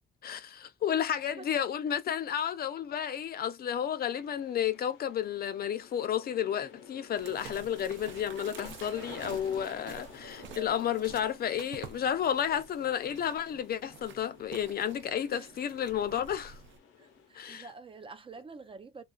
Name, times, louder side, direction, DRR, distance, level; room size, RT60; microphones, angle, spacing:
voice 1, 0.2-16.6 17.3-17.7, left 9 dB, 50° left, 0.4 m, -32 dB
voice 2, 1.1-1.5 15.0-15.5 17.0-19.0, right 4 dB, 25° right, 0.4 m, -48 dB
sound 1, 3.9-17.4, left 7 dB, 90° left, 0.8 m, -52 dB
sound 2, 7.2-16.8, right 7 dB, 70° right, 0.6 m, -49 dB
2.4 x 2.3 x 2.3 m
cardioid pair, 90°, 20 cm